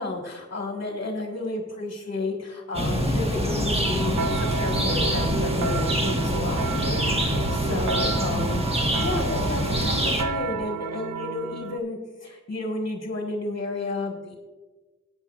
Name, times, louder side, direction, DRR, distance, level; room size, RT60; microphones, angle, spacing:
voice 1, 0.0-14.4, left 2 dB, 40° left, 1 dB, 1.5 m, -32 dB
sound 1, 2.7-10.2, equal, 20° right, 1.3 m, -25 dB
sound 2, 3.8-11.8, right 6 dB, 75° right, 0.5 m, -32 dB
15.0 x 9.0 x 2.4 m, 1.3 s
cardioid pair, 65°, 30 cm